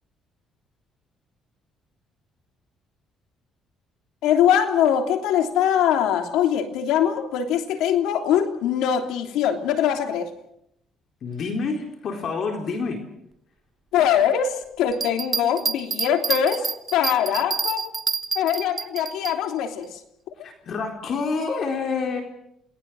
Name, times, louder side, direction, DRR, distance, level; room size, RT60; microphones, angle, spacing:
voice 1, 4.2-10.3 13.9-17.9 18.3-20.0, left 9 dB, 85° left, 5 dB, 3.1 m, -22 dB
voice 2, 11.2-13.0 20.4-22.2, left 4 dB, 55° left, 3 dB, 4.2 m, -28 dB
sound 1, 14.9-19.3, right 5 dB, 35° right, 1.2 m, -27 dB
28.0 x 19.5 x 6.4 m, 0.76 s
cardioid pair, 105°, 0 cm